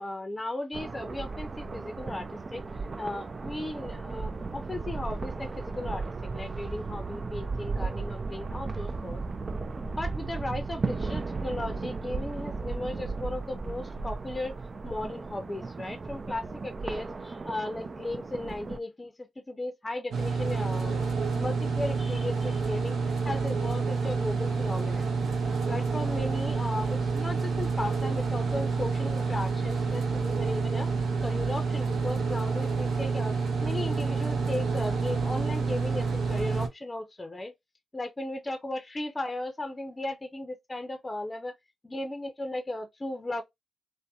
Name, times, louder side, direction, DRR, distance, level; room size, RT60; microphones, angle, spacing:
voice 1, 0.0-2.6 3.0-9.2 9.8-14.6 14.8-19.1 19.5-21.0 21.3-25.1 25.7-30.9 31.2-33.3 33.6-37.5 37.9-41.5 41.8-43.4, left 2 dB, 25° left, 0.5 m, -36 dB
sound 1, 0.7-18.8, right 4 dB, 45° right, 0.3 m, -35 dB
sound 2, 20.1-36.7, right 4 dB, 75° right, 0.7 m, -28 dB
2.6 x 2.1 x 2.4 m
hypercardioid pair, 40°, 0 cm